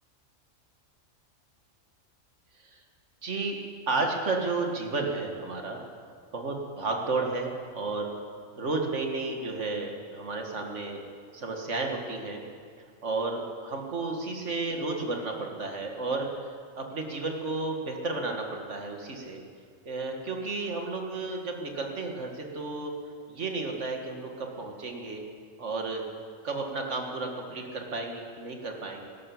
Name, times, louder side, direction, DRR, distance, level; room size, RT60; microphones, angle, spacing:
voice 1, 3.2-3.6 3.9-5.8 6.3-8.1 8.6-11.0 11.3-12.4 13.0-16.3 16.7-19.4 19.9-22.9 23.3-25.2 25.6-26.0 26.4-29.1, right 3 dB, 65° right, 2 dB, 2.1 m, -32 dB
16.5 x 12.5 x 7.2 m, 2.1 s
omnidirectional pair, 1.4 m